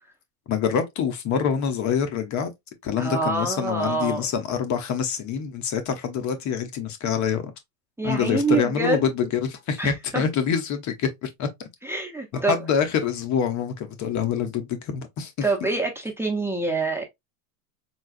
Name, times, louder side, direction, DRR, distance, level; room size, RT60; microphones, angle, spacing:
voice 1, 0.5-2.5 2.8-7.5 8.0-11.5 12.3-15.3, left 7 dB, 40° left, 0.8 m, -26 dB
voice 2, 3.0-4.3 8.0-9.0 9.8-10.2 11.8-12.6 15.4-17.0, right 3 dB, 5° right, 0.7 m, -26 dB
3.9 x 2.4 x 2.4 m
supercardioid pair, 110°, 44 cm